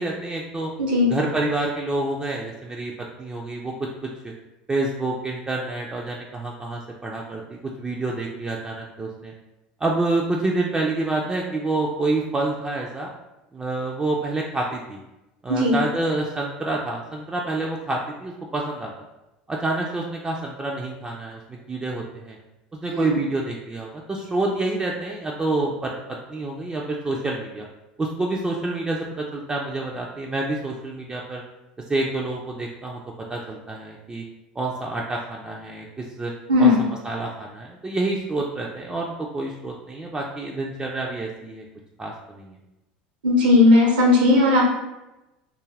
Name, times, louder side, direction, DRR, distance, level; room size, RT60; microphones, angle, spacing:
voice 1, 0.0-0.7 1.1-2.9 3.2-4.3 4.7-9.3 9.8-13.1 13.5-15.0 15.4-18.9 19.5-22.4 22.7-27.7 28.0-31.4 31.9-33.0 33.3-34.2 34.6-36.3 36.6-41.6 42.0-42.6, right 2 dB, 15° right, -2 dB, 0.3 m, -28 dB
voice 2, 43.2-44.6, left 2 dB, 80° right, -2 dB, 0.8 m, -16 dB
2.3 x 2.1 x 3.2 m, 0.98 s
hypercardioid pair, 80°, 5 cm